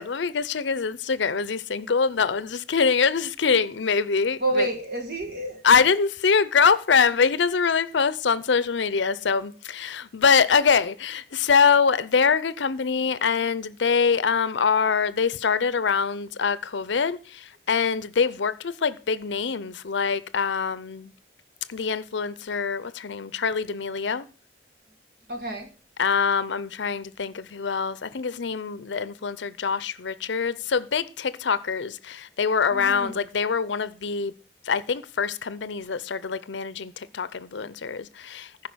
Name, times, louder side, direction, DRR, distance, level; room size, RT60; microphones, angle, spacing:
voice 1, 0.0-4.7 5.6-21.1 21.7-24.3 26.0-34.3 34.6-38.7, left 5 dB, 75° left, 0.6 m, -24 dB
voice 2, 4.4-5.6 25.3-25.7 32.7-33.2, right 2 dB, 55° right, 1.7 m, -28 dB
14.5 x 5.4 x 6.2 m
head